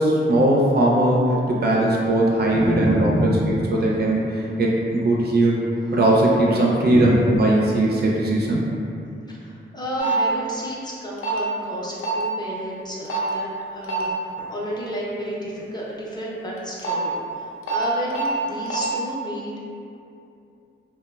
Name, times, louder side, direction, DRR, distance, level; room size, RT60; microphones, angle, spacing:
voice 1, 0.0-3.3 3.7-5.6 5.9-8.6, right 1 dB, 50° right, -3 dB, 0.4 m, -19 dB
voice 2, 2.5-3.6 6.9-7.1 9.3-19.6, equal, 20° left, -6 dB, 0.4 m, -29 dB
sound 1, 10.0-10.2 11.2-11.4 12.0-12.2 13.1-13.3 13.8-14.0 16.6-16.9 17.7-17.8 18.1-18.3 18.7-18.8, right 5 dB, 80° left, 0.4 m, -25 dB
3.1 x 2.0 x 2.2 m, 2.6 s
wide cardioid pair, 115°, 21 cm